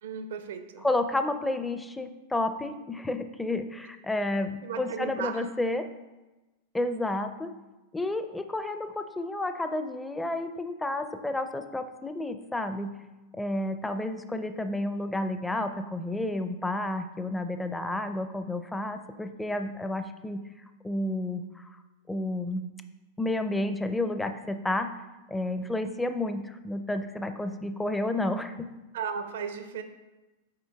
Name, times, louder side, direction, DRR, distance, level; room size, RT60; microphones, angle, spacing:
voice 1, 0.0-0.9 4.6-5.4 28.9-29.8, right 6 dB, 70° right, 9 dB, 0.6 m, -35 dB
voice 2, 0.8-5.9 6.7-7.5 7.9-12.9 13.3-20.5 20.8-21.7 22.1-22.6 23.2-24.9 25.3-28.7, left 2 dB, 10° left, 9 dB, 0.4 m, -31 dB
6.6 x 4.4 x 3.5 m, 1.1 s
hypercardioid pair, 100°, 0 cm